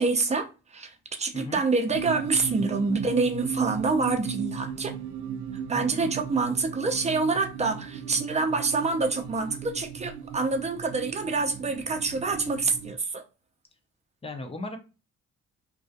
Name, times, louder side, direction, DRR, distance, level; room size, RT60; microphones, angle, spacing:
voice 1, 0.0-4.9 5.7-13.2, right 3 dB, 20° right, 0.5 m, -27 dB
sound 1, 1.8-13.0, right 8 dB, 80° right, 0.5 m, -36 dB
voice 2, 5.8-6.1 14.2-14.8, left 2 dB, 20° left, 0.6 m, -36 dB
2.3 x 2.3 x 2.6 m
cardioid pair, 90°, 30 cm